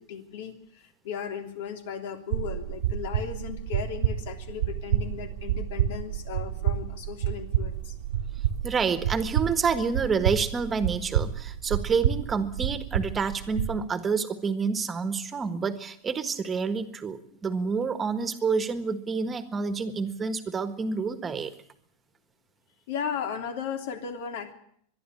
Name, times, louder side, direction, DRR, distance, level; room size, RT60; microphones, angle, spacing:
voice 1, 0.0-7.9 22.9-24.5, left 7 dB, 75° left, 6 dB, 3.2 m, -36 dB
sound 1, 2.3-13.8, right 10 dB, 90° right, 1.5 m, -29 dB
voice 2, 8.6-21.5, right 5 dB, 15° right, 11 dB, 1.5 m, -28 dB
24.0 x 11.0 x 9.9 m, 0.67 s
supercardioid pair, 150°, 0 cm